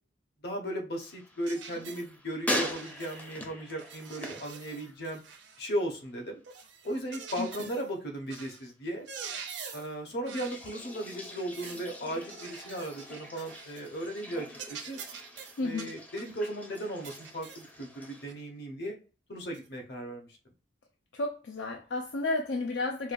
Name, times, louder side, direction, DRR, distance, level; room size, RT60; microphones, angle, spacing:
voice 1, 0.4-5.2 5.6-6.4 6.8-9.1 9.7-15.0 15.6-19.0 19.3-20.3, right 1 dB, 65° left, 1.0 m, -36 dB
sound 1, 0.9-5.4 5.6-6.2 10.3-18.2, left 1 dB, 10° left, 0.4 m, -41 dB
sound 2, 1.4-2.1 2.6-3.4 3.8-5.7 6.4-7.9 8.3-8.6 8.9-9.9 10.2-10.6 11.2-11.9 12.3-13.9 14.2-14.3 14.5-16.4 17.0-17.7 18.3-18.4 19.5-19.7, right 6 dB, 85° right, 0.6 m, -45 dB
voice 2, 15.6-15.9 21.1-23.1, left 2 dB, 85° left, 0.5 m, -32 dB
4.7 x 2.3 x 2.5 m
head